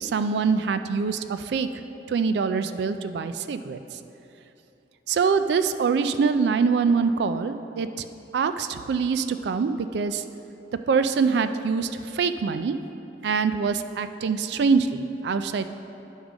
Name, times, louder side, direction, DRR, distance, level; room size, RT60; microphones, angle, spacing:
voice 1, 0.0-1.7 2.1-3.8 5.1-8.1 8.3-10.2 10.9-12.8 13.2-15.7, right 5 dB, 70° right, 10 dB, 0.3 m, -24 dB
8.8 x 3.7 x 6.0 m, 2.9 s
head